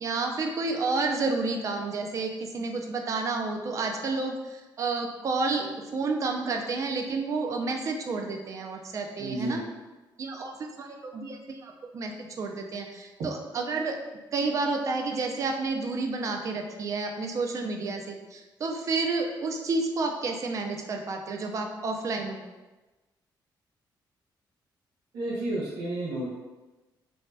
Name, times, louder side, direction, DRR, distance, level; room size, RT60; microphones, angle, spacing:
voice 1, 0.0-9.6 10.2-14.0 14.3-22.4, right 3 dB, 40° right, 3 dB, 0.3 m, -30 dB
voice 2, 9.2-9.6 13.2-13.3 25.1-26.3, right 1 dB, 90° right, -6 dB, 0.5 m, -31 dB
2.6 x 2.1 x 3.2 m, 1.2 s
wide cardioid pair, 160°, 8 cm